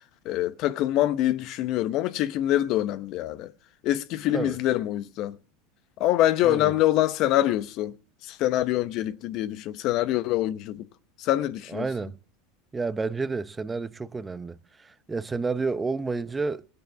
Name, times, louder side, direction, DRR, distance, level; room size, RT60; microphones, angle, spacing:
voice 1, 0.2-3.5 3.8-5.4 6.0-8.0 8.2-10.9 11.2-11.9, left 14 dB, 55° left, 0.8 m, -25 dB
voice 2, 6.4-6.7 11.7-12.2 12.7-16.7, right 4 dB, 15° right, 0.7 m, -30 dB
16.0 x 8.4 x 6.9 m
hypercardioid pair, 85°, 0 cm